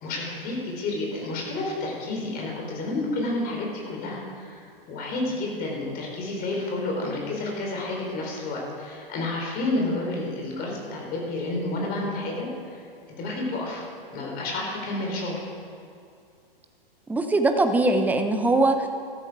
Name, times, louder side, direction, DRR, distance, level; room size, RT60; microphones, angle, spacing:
voice 1, 0.0-12.9 13.2-15.5, left 2 dB, 30° left, -1 dB, 3.8 m, -30 dB
voice 2, 17.1-18.9, right 2 dB, 5° right, 7 dB, 0.8 m, -21 dB
13.5 x 13.0 x 4.8 m, 2.5 s
figure-of-eight pair, 110°, 29 cm